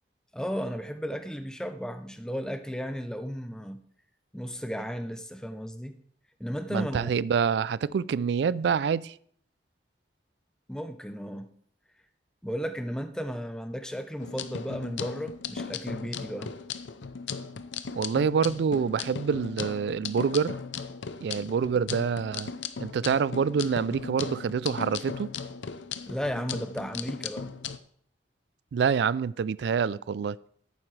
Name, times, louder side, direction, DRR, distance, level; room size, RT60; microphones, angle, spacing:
voice 1, 0.3-3.8 4.3-6.0 6.4-7.2 10.7-11.5 12.4-16.5 26.0-27.5, equal, 5° left, 0.6 m, -34 dB
voice 2, 6.7-9.1 18.0-20.6 21.2-22.5 22.8-25.3 28.7-30.4, right 6 dB, 70° right, 0.3 m, -26 dB
sound 1, 14.2-27.8, left 6 dB, 90° left, 0.6 m, -37 dB
11.0 x 9.2 x 3.3 m
head